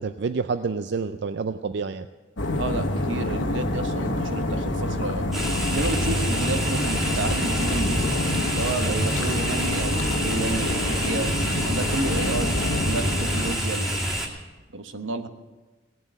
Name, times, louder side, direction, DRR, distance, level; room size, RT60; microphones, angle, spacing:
voice 1, 0.0-2.1 8.8-9.1, right 5 dB, 60° right, 11 dB, 0.4 m, -28 dB
sound 1, 2.4-13.5, left 1 dB, 80° left, 1.3 m, -27 dB
voice 2, 2.5-5.3 5.7-8.0 8.5-14.1 14.7-15.3, right 2 dB, 85° right, 9 dB, 1.0 m, -31 dB
sound 2, 5.3-14.3, equal, ahead, 2.3 m, -28 dB
17.0 x 7.6 x 8.9 m, 1.2 s
head